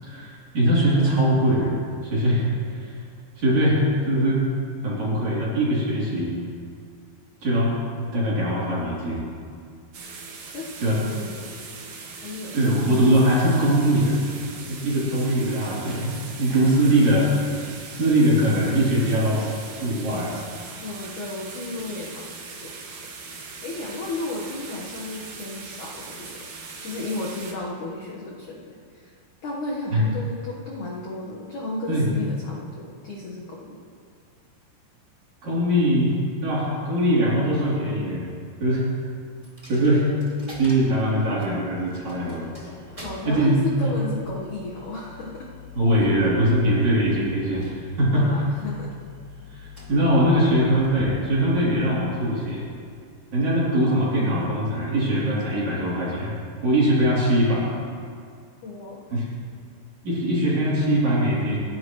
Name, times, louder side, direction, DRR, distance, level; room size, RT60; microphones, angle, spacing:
voice 1, 0.0-2.5 2.7-3.0 3.4-4.5 4.8-6.3 7.4-7.7 8.0-9.2 10.8-11.0 12.5-14.2 14.7-17.3 17.9-19.5 19.8-20.4 29.9-30.0 31.9-32.1 35.4-36.1 36.4-38.3 38.6-38.9 39.7-40.1 40.6-42.5 43.2-43.9 45.7-48.3 49.5-49.6 49.9-52.6 53.3-56.3 56.6-57.7 59.1-59.3 60.0-61.6, right 1 dB, 40° right, -7 dB, 4.2 m, -21 dB
sound 1, 9.9-27.5, right 4 dB, 75° right, 1.5 m, -40 dB
voice 2, 10.5-11.6 12.2-12.8 20.8-22.8 23.6-26.4 26.8-29.1 29.4-33.8 43.0-45.5 48.1-48.9 58.6-59.3, left 2 dB, 65° left, -4 dB, 2.0 m, -34 dB
Coin (dropping), 39.4-53.2, left 3 dB, 20° right, 0.8 m, -44 dB
28.5 x 11.0 x 3.1 m, 2.2 s
omnidirectional pair, 5.4 m